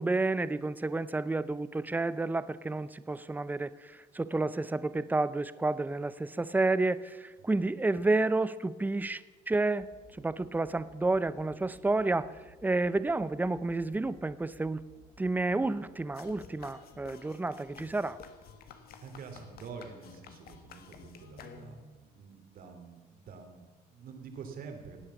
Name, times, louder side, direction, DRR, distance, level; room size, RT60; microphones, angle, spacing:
voice 1, 0.0-9.2 9.5-9.9 10.2-12.3 12.6-14.8 15.2-18.2, right 2 dB, 10° right, 16 dB, 0.6 m, -30 dB
sound 1, 9.7-17.9, right 1 dB, 25° left, 3.8 m, -60 dB
sound 2, 16.1-22.0, left 6 dB, 65° left, 1.6 m, -52 dB
voice 2, 19.0-25.1, right 5 dB, 60° right, 5 dB, 2.8 m, -47 dB
17.5 x 8.7 x 7.1 m, 1.4 s
cardioid pair, 110°, 17 cm